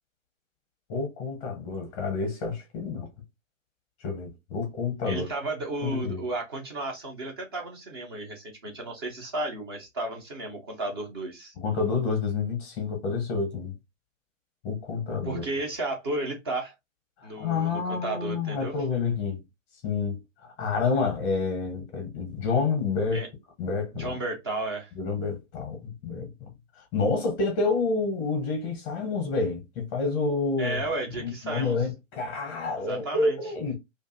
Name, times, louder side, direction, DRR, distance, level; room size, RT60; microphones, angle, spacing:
voice 1, 0.9-3.1 4.0-5.3 5.8-6.2 11.6-13.7 14.6-15.4 17.2-19.4 19.8-23.2 23.6-24.1 25.0-26.3 26.9-30.8 31.2-33.8, left 4 dB, 20° left, 0.8 m, -28 dB
voice 2, 5.0-11.5 15.2-16.7 17.2-18.7 23.1-23.3 23.9-24.9 30.6-31.7 32.8-33.4, right 2 dB, 20° right, 0.5 m, -33 dB
2.5 x 2.4 x 2.6 m
figure-of-eight pair, 120°, 39 cm